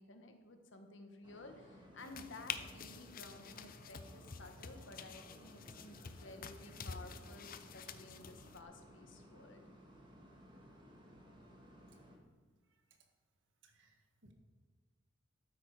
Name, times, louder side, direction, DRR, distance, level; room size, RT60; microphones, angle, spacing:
voice 1, 0.0-9.6, left 2 dB, 80° left, 5 dB, 1.5 m, -54 dB
sound 1, 1.2-12.2, equal, 25° right, 2.0 m, -59 dB
sound 2, 2.0-8.6, left 6 dB, 50° left, 0.7 m, -48 dB
voice 2, 13.6-14.3, right 2 dB, 80° right, 4 dB, 1.7 m, -67 dB
12.5 x 9.0 x 4.9 m, 1.4 s
head